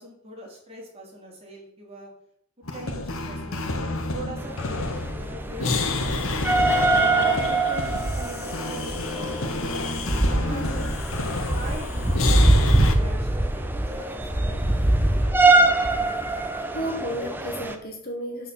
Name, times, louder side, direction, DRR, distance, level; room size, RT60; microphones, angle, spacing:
voice 1, 0.0-2.1 2.7-3.7 4.1-6.1 6.5-9.5 10.0-10.9 11.5-15.3, right 1 dB, 30° right, -3 dB, 3.7 m, -41 dB
sound 1, 2.6-13.0, left 3 dB, 90° left, 1.4 m, -29 dB
sound 2, 4.4-17.7, right 2 dB, 10° right, 0.9 m, -23 dB
voice 2, 10.5-10.8 16.6-18.5, equal, 50° left, 1 dB, 2.8 m, -32 dB
8.9 x 6.4 x 7.1 m, 0.70 s
head